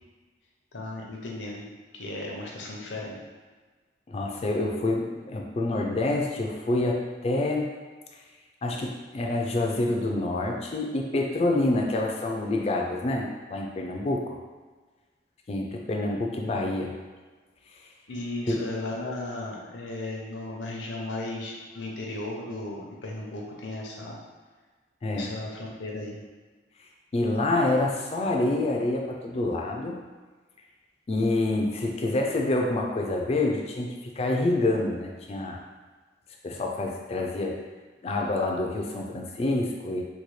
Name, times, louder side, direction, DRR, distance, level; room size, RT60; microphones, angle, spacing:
voice 1, 0.7-3.2 18.1-24.2 25.1-26.2, left 2 dB, 85° left, -2 dB, 0.7 m, -35 dB
voice 2, 4.1-7.7 8.6-14.4 15.5-16.9 18.5-18.6 25.0-25.3 27.1-29.9 31.1-35.6 36.4-37.5 38.0-40.0, left 2 dB, 35° left, 0 dB, 0.4 m, -27 dB
4.1 x 2.2 x 3.1 m, 1.4 s
head